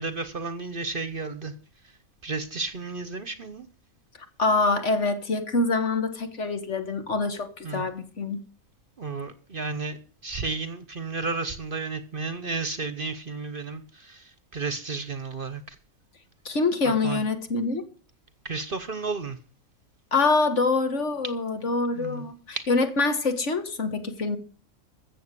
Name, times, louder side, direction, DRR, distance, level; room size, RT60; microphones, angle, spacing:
voice 1, 0.0-1.5 2.2-3.7 7.6-7.9 9.0-10.0 10.2-15.8 16.8-17.2 18.4-19.4 21.9-22.2 22.6-22.7, right 4 dB, 45° right, 11 dB, 1.0 m, -32 dB
voice 2, 4.4-8.4 16.4-17.8 20.1-24.4, left 3 dB, 55° left, 8 dB, 1.8 m, -25 dB
14.5 x 7.6 x 6.8 m, 0.42 s
omnidirectional pair, 1.5 m